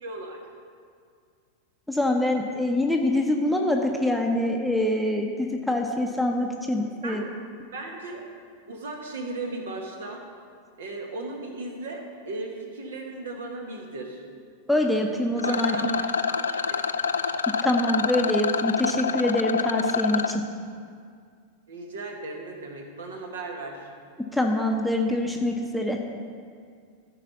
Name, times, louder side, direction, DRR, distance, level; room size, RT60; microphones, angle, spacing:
voice 1, 0.0-0.4 7.0-7.3 7.7-8.2 8.7-10.2 10.8-14.2 15.4-16.6 21.7-23.9, right 2 dB, 65° right, 2 dB, 1.6 m, -36 dB
voice 2, 1.9-7.2 14.7-15.9 17.5-20.4 24.3-26.0, left 1 dB, ahead, 2 dB, 0.9 m, -25 dB
Rattle, 15.4-20.4, left 6 dB, 70° left, 0.4 m, -27 dB
14.0 x 5.1 x 5.6 m, 2.2 s
figure-of-eight pair, 90°, 0 cm